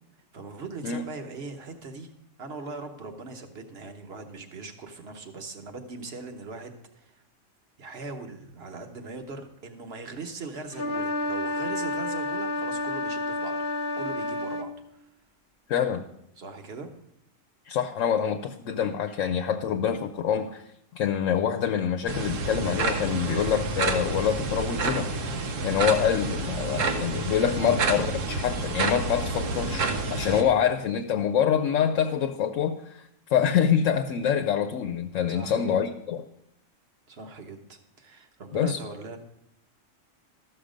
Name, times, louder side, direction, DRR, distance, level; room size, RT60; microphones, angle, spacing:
voice 1, 0.3-2.1 2.4-7.2 7.8-13.7 14.0-15.1 16.4-16.9 27.6-27.9 35.3-35.7 37.1-39.2, right 3 dB, 55° right, 5 dB, 1.3 m, -40 dB
sound 1, 10.7-14.7, left 1 dB, 50° left, 0.8 m, -30 dB
voice 2, 15.7-16.0 17.7-20.6 20.9-25.1 25.6-36.3 38.5-38.8, left 8 dB, 75° left, 7 dB, 1.0 m, -26 dB
sound 2, 22.1-30.4, right 3 dB, 80° right, 1.3 m, -29 dB
13.0 x 6.3 x 5.1 m, 0.78 s
omnidirectional pair, 1.3 m